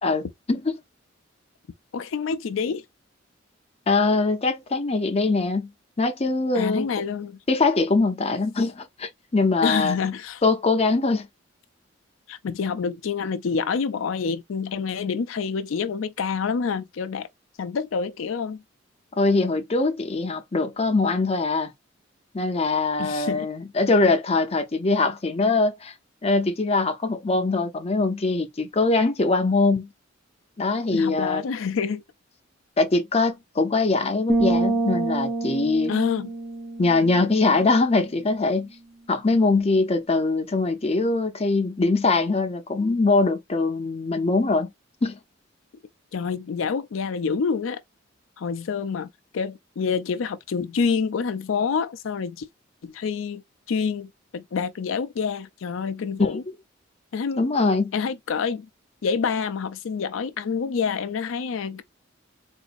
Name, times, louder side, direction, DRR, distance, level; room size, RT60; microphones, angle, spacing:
voice 1, 1.9-2.8 6.5-7.4 9.6-10.4 12.3-17.3 17.6-18.6 23.0-23.5 30.9-32.0 35.9-36.3 46.1-47.8 48.4-52.5 52.8-53.4 53.7-56.4 57.1-57.4 57.9-58.7 59.0-61.8, left 5 dB, 85° left, 0.4 m, -27 dB
voice 2, 3.9-5.7 6.0-6.9 7.5-10.0 10.4-11.3 19.2-21.7 22.3-25.9 26.2-29.9 30.6-31.4 32.8-35.9 36.8-38.7 39.1-44.7 45.0-45.2 56.2-56.4 57.4-57.9, left 3 dB, 30° left, 0.6 m, -22 dB
sound 1, 34.3-38.0, right 2 dB, ahead, 0.8 m, -27 dB
4.0 x 2.5 x 2.5 m
head